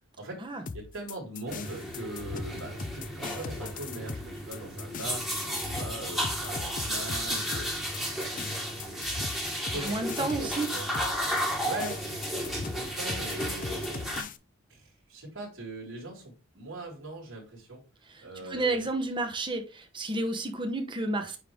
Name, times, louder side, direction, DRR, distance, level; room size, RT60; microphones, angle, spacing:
voice 1, 0.2-7.7 8.2-8.6 8.9-9.0 9.7-10.9 11.6-14.2 14.7-17.8 18.2-18.9, right 2 dB, 65° right, 3.6 m, -41 dB
sound 1, 0.7-14.4, left 5 dB, 40° left, 0.4 m, -40 dB
sound 2, 1.5-14.2, equal, ahead, 1.4 m, -33 dB
voice 2, 9.7-10.7 18.1-21.4, right 2 dB, 25° right, 0.9 m, -31 dB
9.2 x 3.2 x 3.5 m
head